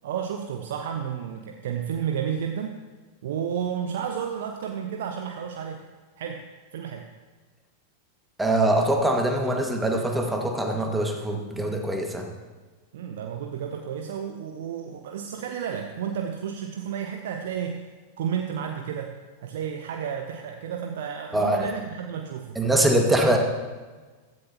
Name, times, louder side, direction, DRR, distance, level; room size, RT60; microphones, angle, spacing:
voice 1, 0.0-2.8 3.2-5.8 6.2-6.4 6.7-7.1 12.9-17.8 18.2-19.1 19.4-22.6, right 8 dB, 55° right, 4 dB, 0.8 m, -31 dB
voice 2, 8.4-12.3 21.3-21.7 22.6-23.4, right 1 dB, 5° right, 2 dB, 1.8 m, -23 dB
15.5 x 14.0 x 2.9 m, 1.4 s
figure-of-eight pair, 90°, 0 cm